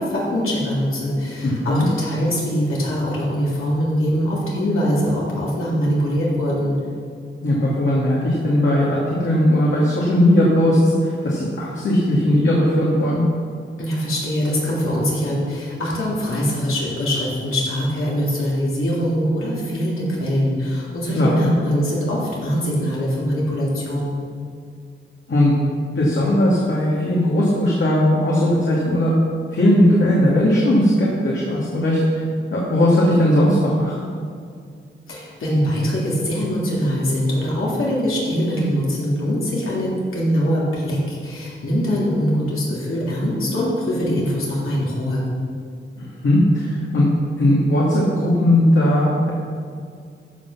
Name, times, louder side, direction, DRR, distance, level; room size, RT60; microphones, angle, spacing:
voice 1, 0.0-6.7 13.8-24.1 35.1-45.3, equal, 85° left, -5 dB, 3.5 m, -22 dB
voice 2, 1.4-1.9 7.4-13.2 21.1-21.5 25.3-25.5 26.0-29.1 29.5-32.2 32.5-33.9 46.0-47.1 47.4-49.3, left 1 dB, 65° left, -5 dB, 2.5 m, -18 dB
14.0 x 6.2 x 5.9 m, 2.2 s
cardioid pair, 70°, 21 cm